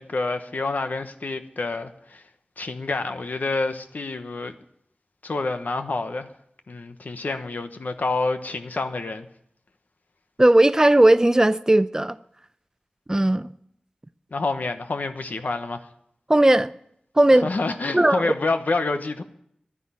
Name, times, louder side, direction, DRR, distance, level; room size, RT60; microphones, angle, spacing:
voice 1, 0.0-2.2 2.6-4.6 5.2-6.3 6.7-9.3 14.3-15.9 17.3-19.2, left 3 dB, 80° left, 1.1 m, -28 dB
voice 2, 10.4-12.2 13.1-13.5 16.3-16.7 17.2-17.5 17.9-18.3, right 1 dB, 20° right, 0.6 m, -17 dB
11.0 x 9.9 x 9.7 m
wide cardioid pair, 55°, 3 cm